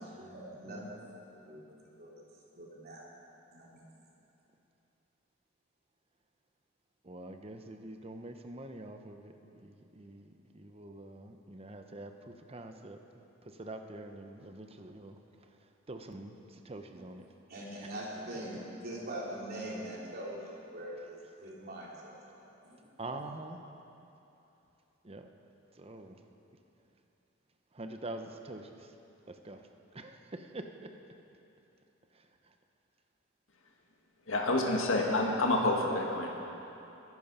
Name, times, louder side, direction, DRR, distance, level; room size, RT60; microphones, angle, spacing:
voice 1, 0.0-1.6 2.0-2.1 2.5-3.0 3.5-3.8 16.9-17.0 17.5-22.9, right 1 dB, 45° right, -5 dB, 3.6 m, -43 dB
voice 2, 7.0-13.0 13.6-15.2 15.9-17.2 23.0-23.6 25.0-25.3 25.8-26.2 27.7-28.7 29.4-29.6 29.9-30.9, right 2 dB, 30° right, 6 dB, 0.8 m, -45 dB
voice 3, 34.3-36.3, left 2 dB, 70° left, 0 dB, 1.9 m, -28 dB
22.0 x 11.0 x 5.6 m, 2.9 s
head